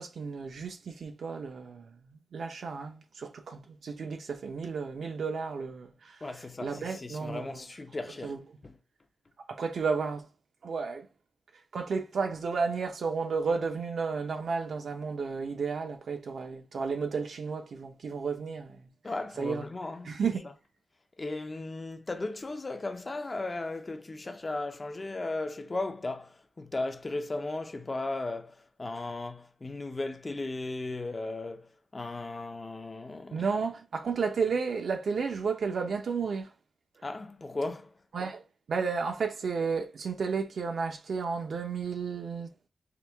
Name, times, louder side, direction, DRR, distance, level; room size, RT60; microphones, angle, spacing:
voice 1, 0.0-1.9 2.3-6.2 6.6-7.6 8.2-8.4 9.5-10.3 10.6-11.1 11.7-18.9 19.4-19.7 20.0-20.5 33.3-36.5 38.1-38.4 38.7-42.5, right 5 dB, 65° right, 0.7 m, -32 dB
voice 2, 6.2-8.4 8.6-8.7 19.0-20.1 21.2-33.5 37.0-37.9, left 2 dB, 25° left, 0.5 m, -36 dB
4.7 x 2.2 x 3.4 m
wide cardioid pair, 165°, 0 cm